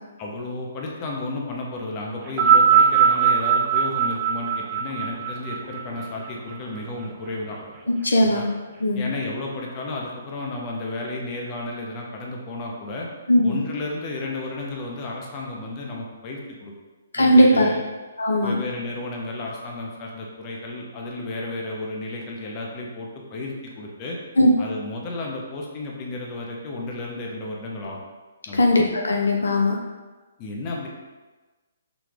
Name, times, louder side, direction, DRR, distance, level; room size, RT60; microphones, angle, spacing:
voice 1, 0.2-7.6 8.1-8.4 9.0-13.1 13.4-16.7 17.2-17.8 18.4-24.2 24.6-28.0 28.5-28.6 30.4-30.9, left 2 dB, 30° left, -1 dB, 0.9 m, -32 dB
sound 1, 2.3-6.8 7.7-7.8, right 7 dB, 25° right, 0.6 m, -20 dB
voice 2, 8.0-8.5 8.8-9.0 13.3-13.6 17.1-17.7 18.2-18.6 24.4-24.5 28.5-29.8, left 1 dB, 80° left, 1 dB, 0.6 m, -18 dB
6.0 x 2.3 x 3.6 m, 1.2 s
figure-of-eight pair, 135°, 0 cm